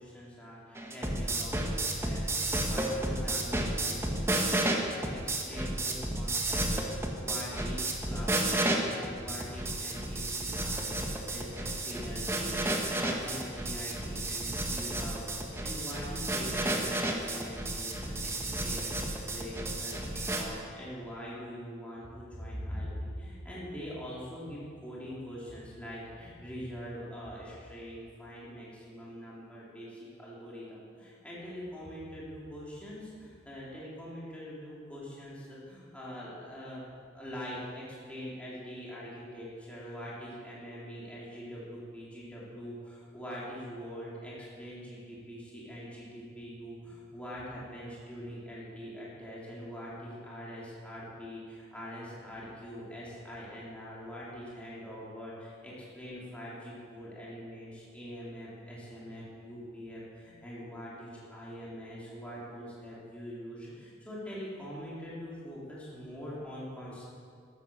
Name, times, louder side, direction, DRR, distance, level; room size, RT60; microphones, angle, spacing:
voice 1, 0.0-4.8 5.1-36.9 37.1-67.1, equal, 5° left, -7 dB, 3.9 m, -43 dB
sound 1, 0.7-20.4, right 1 dB, 15° right, 1.5 m, -32 dB
15.0 x 13.5 x 6.6 m, 2.3 s
head